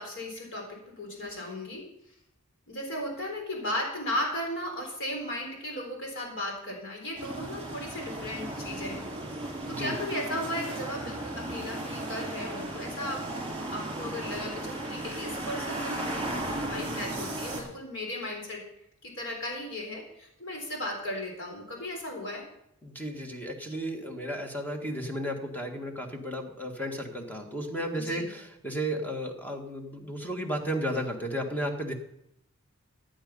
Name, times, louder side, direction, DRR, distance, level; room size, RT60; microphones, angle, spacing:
voice 1, 0.0-1.9 2.7-9.1 9.7-13.3 13.7-18.6 19.0-22.4 27.9-28.3, left 1 dB, 65° left, 1 dB, 3.8 m, -36 dB
sound 1, 7.2-17.6, right 1 dB, 25° right, 5.2 m, -35 dB
voice 2, 9.6-10.0 22.8-31.9, equal, 10° left, 3 dB, 1.7 m, -33 dB
14.5 x 9.1 x 5.5 m, 0.79 s
head